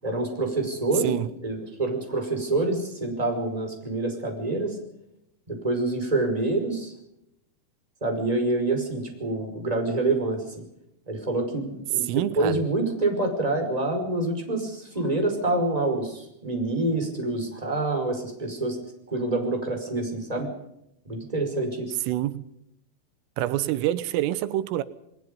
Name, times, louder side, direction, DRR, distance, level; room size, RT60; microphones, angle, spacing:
voice 1, 0.0-4.8 5.5-6.9 8.0-10.5 11.1-18.8 19.1-20.5 21.0-22.0, right 2 dB, 5° right, 4.9 m, -27 dB
voice 2, 12.1-12.5 22.1-22.4 23.4-24.8, right 13 dB, 90° right, 3.6 m, -26 dB
29.0 x 20.5 x 5.3 m
omnidirectional pair, 5.7 m